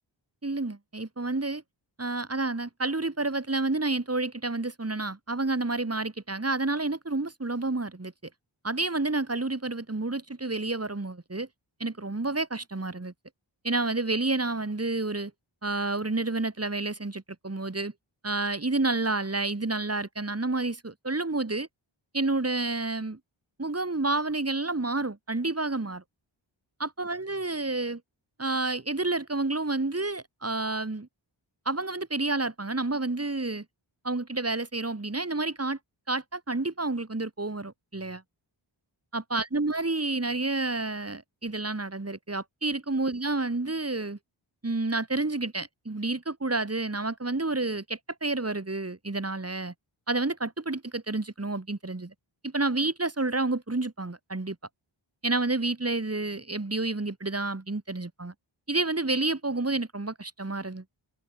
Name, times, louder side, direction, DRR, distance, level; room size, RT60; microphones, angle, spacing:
voice 1, 0.4-1.6 2.0-8.1 8.6-11.5 11.8-13.1 13.6-15.3 15.6-17.9 18.2-21.7 22.1-23.2 23.6-26.0 26.8-28.0 28.4-31.1 31.7-33.6 34.0-35.8 36.1-38.2 39.1-44.2 44.6-49.7 50.1-52.1 52.4-54.6 55.2-58.3 58.7-60.8, right 2 dB, 30° right, 4.3 m, -29 dB
wide cardioid pair, 80°, 47 cm